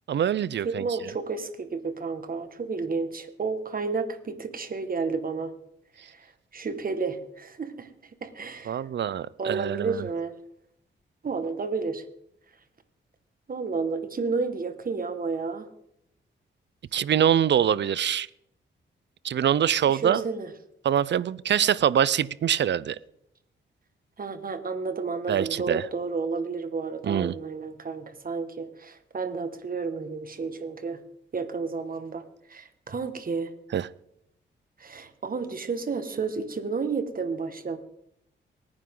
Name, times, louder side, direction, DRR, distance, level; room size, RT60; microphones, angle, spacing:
voice 1, 0.1-0.8 8.7-10.0 16.9-18.3 19.2-20.2 20.8-23.0 25.3-25.8 27.0-27.3 33.7-33.9, right 9 dB, 60° right, 0.6 m, -24 dB
voice 2, 0.6-5.5 6.1-6.3 6.5-7.9 8.2-8.8 9.4-10.4 11.2-12.0 13.5-15.7 19.9-20.5 24.2-31.0 31.3-32.2 32.5-33.5 34.8-37.8, right 4 dB, 45° right, 1.8 m, -31 dB
24.5 x 9.8 x 3.9 m
cardioid pair, 75°, 20 cm